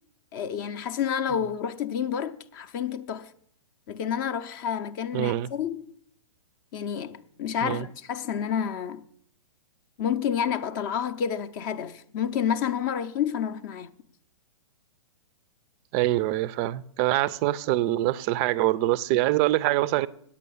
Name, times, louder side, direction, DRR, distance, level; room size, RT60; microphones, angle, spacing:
voice 1, 0.3-3.3 3.9-5.9 6.7-9.1 10.0-13.9, left 8 dB, 40° left, 0.5 m, -29 dB
voice 2, 5.1-5.5 7.6-7.9 15.9-20.1, right 16 dB, 30° right, 0.3 m, -24 dB
8.5 x 8.3 x 7.0 m
hypercardioid pair, 135°, 18 cm